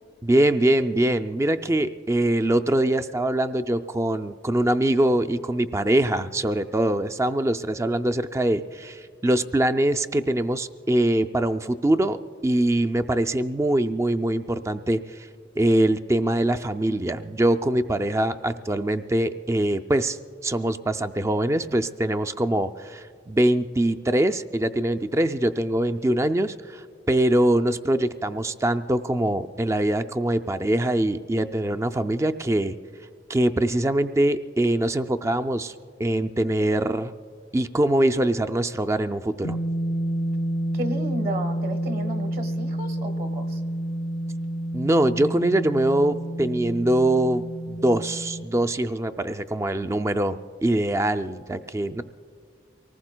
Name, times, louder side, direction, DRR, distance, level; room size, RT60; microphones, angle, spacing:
voice 1, 0.2-15.3 15.6-32.8 33.3-35.7 36.0-37.1 37.5-39.6 44.7-52.0, right 1 dB, 15° right, 10 dB, 0.3 m, -23 dB
sound 1, 39.4-48.5, right 1 dB, 65° left, 0.6 m, -29 dB
voice 2, 40.7-43.6, right 1 dB, 50° right, 7 dB, 1.3 m, -33 dB
24.5 x 19.0 x 2.2 m, 2.1 s
head